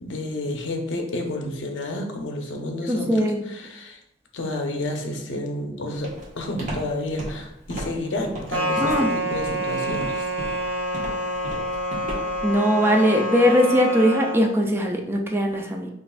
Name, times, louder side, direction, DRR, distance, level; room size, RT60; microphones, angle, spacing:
voice 1, 0.0-4.0 4.3-10.3, left 2 dB, 80° left, 3 dB, 0.6 m, -30 dB
voice 2, 2.9-3.5 8.8-9.1 12.4-15.9, equal, 15° right, 2 dB, 0.4 m, -20 dB
Walk footsteps, 6.0-12.5, right 1 dB, 45° right, 1.1 m, -34 dB
sound 1, 8.5-14.5, equal, 90° right, 0.9 m, -27 dB
5.4 x 2.5 x 2.3 m, 0.83 s
head